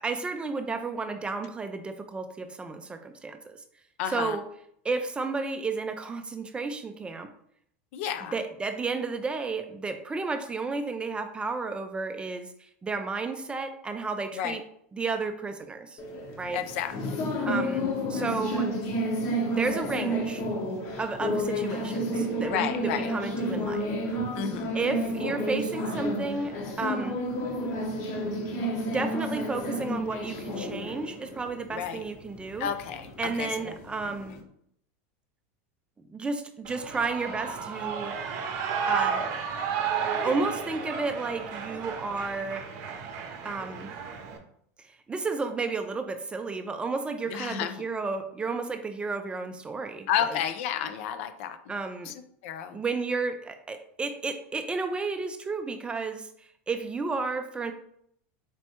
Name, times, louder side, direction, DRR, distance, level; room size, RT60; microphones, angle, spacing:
voice 1, 0.0-3.6 4.1-4.4 4.8-7.3 8.2-14.6 14.9-16.0 16.4-16.6 17.5-17.8 18.1-18.7 19.4-20.4 21.0-24.2 24.7-27.2 28.8-32.7 33.2-34.4 36.1-38.2 38.9-39.4 40.2-42.7 43.4-43.9 44.8-50.4 51.7-52.1 52.7-57.7, right 4 dB, 15° right, 8 dB, 0.3 m, -32 dB
voice 2, 4.0-4.4 7.9-8.4 14.3-14.6 16.5-17.2 22.5-23.1 24.3-24.7 31.7-32.0 32.6-33.8 47.3-47.8 50.1-51.8 52.0-52.1 52.4-52.8, left 9 dB, 65° left, 9 dB, 0.5 m, -31 dB
sound 1, 16.0-34.4, equal, 50° left, 1.0 m, -31 dB
Shout / Cheering, 36.6-44.4, right 6 dB, 50° right, 0.6 m, -32 dB
4.4 x 3.2 x 2.8 m, 0.69 s
supercardioid pair, 135°, 7 cm